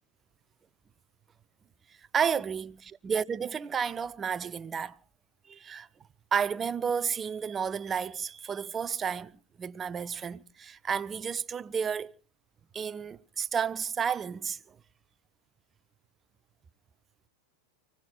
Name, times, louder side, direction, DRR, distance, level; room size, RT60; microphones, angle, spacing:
voice 1, 2.1-5.0 5.5-5.9 6.3-12.1 12.7-14.8, right 7 dB, 20° right, 0.6 m, -32 dB
29.5 x 18.0 x 2.4 m
figure-of-eight pair, 90°, 0 cm